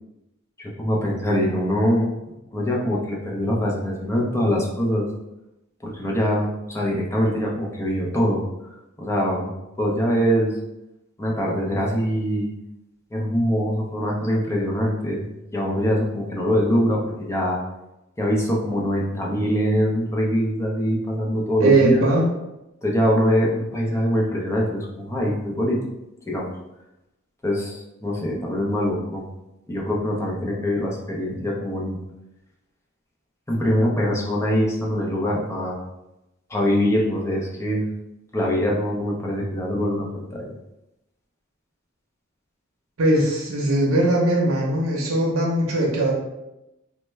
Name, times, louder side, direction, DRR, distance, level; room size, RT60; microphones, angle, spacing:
voice 1, 0.6-2.2 2.5-5.1 5.8-8.4 9.0-9.5 9.8-10.5 11.2-12.5 13.1-15.3 15.5-17.6 18.2-22.0 22.8-25.8 26.3-26.5 27.4-29.2 29.7-32.0 33.5-35.8 36.5-37.8 38.3-40.5, equal, 15° left, -2 dB, 0.5 m, -23 dB
voice 2, 21.6-22.3 43.0-46.1, right 2 dB, 85° right, -2 dB, 0.7 m, -20 dB
3.2 x 2.1 x 3.2 m, 0.92 s
head